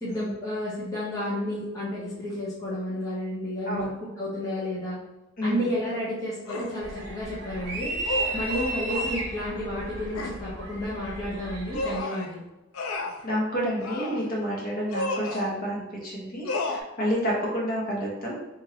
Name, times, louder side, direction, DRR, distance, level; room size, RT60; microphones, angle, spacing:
voice 1, 0.0-5.0 5.4-7.9 8.3-12.4, left 1 dB, 15° left, -9 dB, 0.8 m, -31 dB
voice 2, 5.4-5.7 13.2-18.4, equal, 45° left, -4 dB, 1.1 m, -29 dB
sound 1, 6.5-6.8 8.0-9.2 10.1-10.4 11.7-12.3 12.7-13.2 13.8-14.3 14.9-15.5 16.5-16.8, left 2 dB, 85° left, 0.4 m, -32 dB
sound 2, 6.8-12.0, right 2 dB, 50° right, 1.0 m, -34 dB
3.6 x 3.0 x 2.8 m, 1.0 s
head